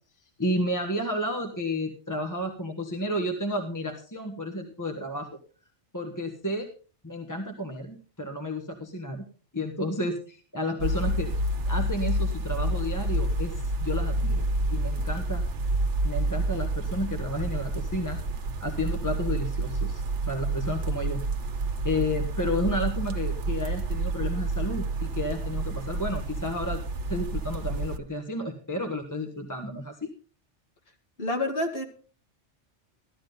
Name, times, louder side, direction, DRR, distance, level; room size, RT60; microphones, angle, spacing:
voice 1, 0.4-5.3 5.9-6.7 7.0-9.2 9.5-11.3 11.7-13.5 13.8-14.4 14.7-15.4 16.0-18.2 18.6-21.2 21.8-26.8 27.1-30.1, left 1 dB, 15° left, 4 dB, 1.4 m, -31 dB
sound 1, 10.8-28.0, right 2 dB, 75° right, 1.3 m, -29 dB
voice 2, 31.2-31.8, left 2 dB, 55° left, 3 dB, 2.3 m, -28 dB
14.0 x 12.5 x 4.0 m, 0.37 s
omnidirectional pair, 1.2 m